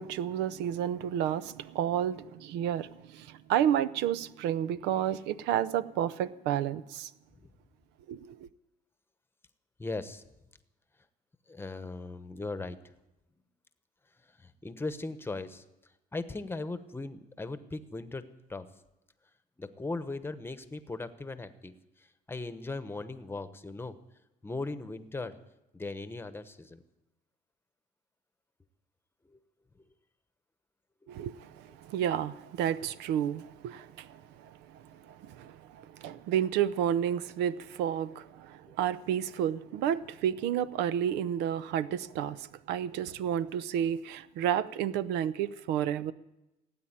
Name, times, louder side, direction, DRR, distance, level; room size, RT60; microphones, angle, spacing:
voice 1, 0.0-7.1 8.1-8.5 31.1-46.1, right 10 dB, 90° right, 0.6 m, -31 dB
voice 2, 9.8-10.2 11.5-12.8 14.4-15.6 16.1-18.2 18.5-18.7 19.6-21.7 22.3-24.0 24.4-25.4 25.7-26.8 38.7-38.8, left 3 dB, 15° left, 1.0 m, -38 dB
17.0 x 8.8 x 8.8 m
cardioid pair, 110°, 17 cm